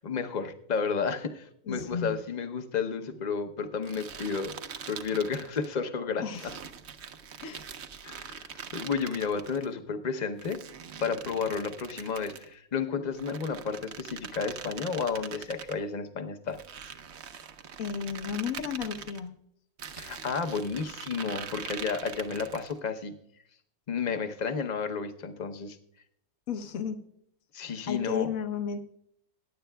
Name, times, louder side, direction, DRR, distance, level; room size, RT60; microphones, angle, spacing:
voice 1, 0.0-4.5 4.9-6.5 8.0-10.6 11.0-16.6 20.0-23.1 23.9-25.8 27.5-28.3, left 5 dB, 35° left, 7 dB, 0.7 m, -32 dB
voice 2, 1.7-2.2 6.2-6.5 7.4-7.7 17.8-19.4 26.5-27.0 27.9-28.8, left 7 dB, 65° left, 8 dB, 1.3 m, -33 dB
sound 1, 3.8-5.7 6.3-9.7 10.4-12.5 13.1-15.8 16.5-19.2 19.8-22.8, right 7 dB, 55° right, 0.9 m, -43 dB
22.0 x 10.0 x 2.3 m, 0.71 s
omnidirectional pair, 1.6 m